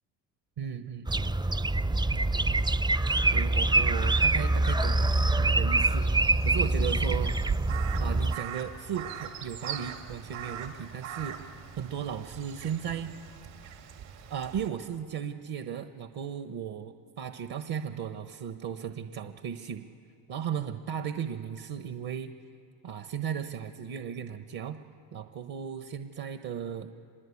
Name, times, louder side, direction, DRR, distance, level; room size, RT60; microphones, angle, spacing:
voice 1, 0.6-1.3 2.1-2.6 3.3-6.1 6.4-7.3 8.0-11.4 11.8-13.1 13.7-13.8 14.3-19.8 20.3-22.3 22.8-24.8 25.1-26.9, right 8 dB, 55° right, 8 dB, 1.3 m, -36 dB
sound 1, 1.1-8.4, right 2 dB, 10° right, 0.5 m, -25 dB
Crow, 5.8-14.7, right 8 dB, 70° right, 3.0 m, -40 dB
25.0 x 21.5 x 8.6 m, 2.5 s
hypercardioid pair, 65°, 44 cm